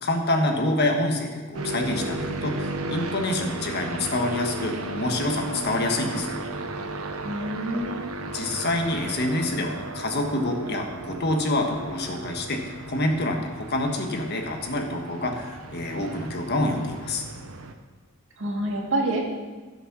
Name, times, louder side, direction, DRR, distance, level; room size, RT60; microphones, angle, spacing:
voice 1, 0.0-6.4 8.3-12.6 12.9-17.2, left 1 dB, 50° left, 2 dB, 1.5 m, -27 dB
sound 1, 1.5-17.7, right 2 dB, 85° right, 1.0 m, -35 dB
voice 2, 7.2-8.1 18.4-19.3, right 1 dB, 60° right, 0 dB, 2.2 m, -27 dB
12.5 x 7.7 x 6.1 m, 1.3 s
head